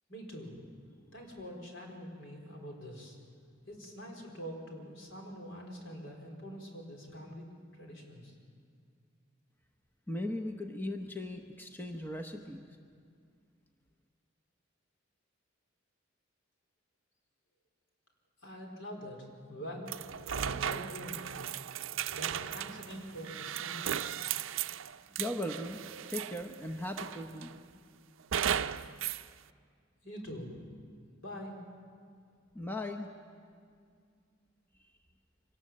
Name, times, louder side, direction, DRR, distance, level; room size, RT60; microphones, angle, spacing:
voice 1, 0.1-0.7 1.1-3.2 3.7-7.5 7.7-8.4 18.4-19.9 20.3-21.5 22.1-24.1 30.0-30.7 31.2-31.6, equal, 70° left, 1 dB, 4.2 m, -45 dB
voice 2, 10.1-12.7 25.2-25.8 26.1-27.5 32.5-33.1, left 1 dB, 10° left, 4 dB, 0.9 m, -38 dB
sound 1, 19.9-26.5 27.0-27.6 28.3-29.3, right 9 dB, 70° right, 0.5 m, -36 dB
24.0 x 19.0 x 7.5 m, 2.2 s
head